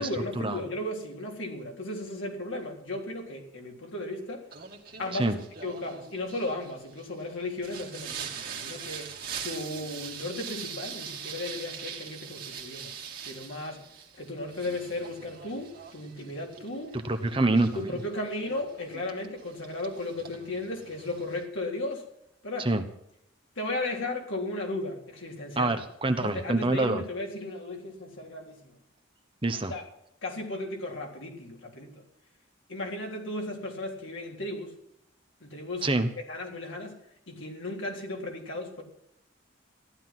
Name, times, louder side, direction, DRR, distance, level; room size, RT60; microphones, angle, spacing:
voice 1, 0.0-4.5 5.0-5.4 5.6-9.1 9.4-12.9 13.2-13.8 14.2-16.9 17.8-22.0 22.4-22.7 23.6-25.7 26.1-28.7 29.7-29.8 30.2-32.0 32.7-34.7 35.4-37.0 37.3-38.8, left 2 dB, 75° left, 0 dB, 3.7 m, -35 dB
Singing, 4.5-21.4, right 7 dB, 45° right, 2.1 m, -43 dB
voice 2, 16.9-17.9 22.6-22.8 25.6-27.0 29.4-29.7 35.8-36.1, right 2 dB, 25° right, 7 dB, 1.0 m, -26 dB
14.5 x 11.5 x 6.0 m, 0.77 s
head